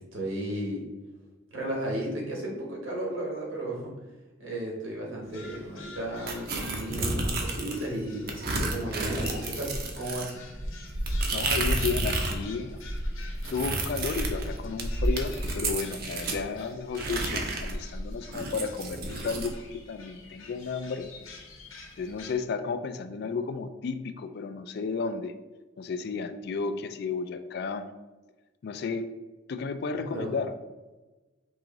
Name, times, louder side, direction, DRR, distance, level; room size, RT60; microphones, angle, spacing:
voice 1, 0.1-0.8 1.5-3.9 4.4-10.4 29.9-30.3, right 1 dB, 75° right, -2 dB, 1.4 m, -34 dB
sound 1, 5.2-22.4, left 3 dB, 90° left, 0.9 m, -48 dB
sound 2, 6.3-7.9 8.3-12.4 12.7-16.4 16.9-19.5, right 2 dB, 50° right, 0.6 m, -30 dB
voice 2, 11.3-12.8 13.5-21.1 22.0-25.3 25.8-27.9 28.6-29.1 29.5-30.5, left 4 dB, 50° left, 9 dB, 0.3 m, -33 dB
4.7 x 3.0 x 3.8 m, 1.2 s
head